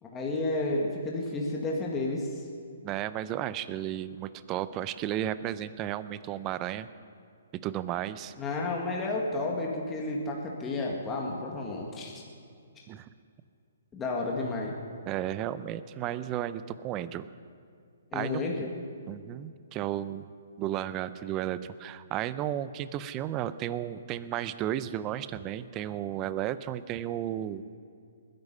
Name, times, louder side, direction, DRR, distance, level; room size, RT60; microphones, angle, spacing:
voice 1, 0.0-2.4 8.4-12.2 13.9-14.8 18.1-18.7, left 2 dB, 15° left, -2 dB, 1.8 m, -31 dB
voice 2, 2.8-6.9 7.5-8.3 12.9-13.1 15.1-17.2 18.1-18.4 19.1-20.3 20.6-27.6, right 12 dB, 25° right, 15 dB, 0.6 m, -33 dB
20.5 x 11.0 x 5.5 m, 2.4 s
hypercardioid pair, 155°, 0 cm